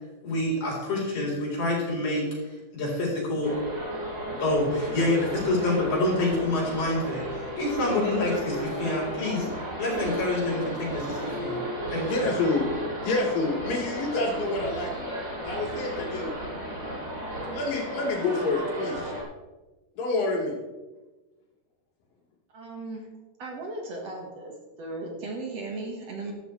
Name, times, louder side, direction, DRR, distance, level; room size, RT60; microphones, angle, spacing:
voice 1, 0.2-2.3 2.7-3.6 4.4-7.3 7.5-9.4 9.8-11.6 11.9-12.1, left 2 dB, 60° left, -5 dB, 5.6 m, -27 dB
sound 1, 3.4-19.2, equal, 25° right, 3.7 m, -34 dB
voice 2, 12.1-12.7 13.0-15.1 15.4-16.4 17.5-19.1 20.0-20.6, left 2 dB, 85° left, -1 dB, 4.1 m, -28 dB
voice 3, 22.5-23.1 23.4-24.5 24.8-26.3, right 2 dB, 55° right, 0 dB, 2.5 m, -36 dB
14.0 x 12.5 x 3.3 m, 1.2 s
omnidirectional pair, 3.8 m